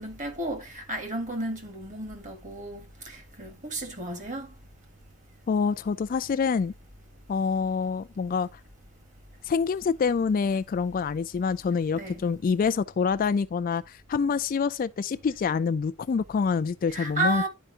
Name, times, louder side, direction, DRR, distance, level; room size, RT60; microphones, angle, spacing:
voice 1, 0.0-4.5 11.9-12.2 16.9-17.5, right 2 dB, 35° right, 1.7 m, -33 dB
voice 2, 5.5-6.7 7.3-8.5 9.4-17.5, left 5 dB, 40° left, 0.3 m, -26 dB
11.0 x 4.5 x 2.8 m
head